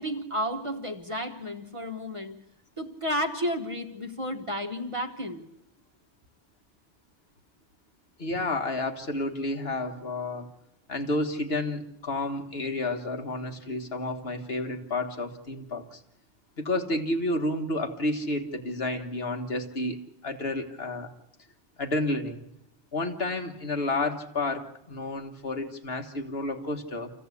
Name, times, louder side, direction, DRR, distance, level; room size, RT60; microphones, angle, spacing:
voice 1, 0.0-2.4 2.8-5.5, equal, 30° right, 1.2 m, -32 dB
voice 2, 8.2-10.5 10.9-16.0 16.6-21.1 21.8-22.4 22.9-27.1, left 2 dB, 65° left, 1.8 m, -30 dB
27.0 x 15.0 x 8.4 m
omnidirectional pair, 1.1 m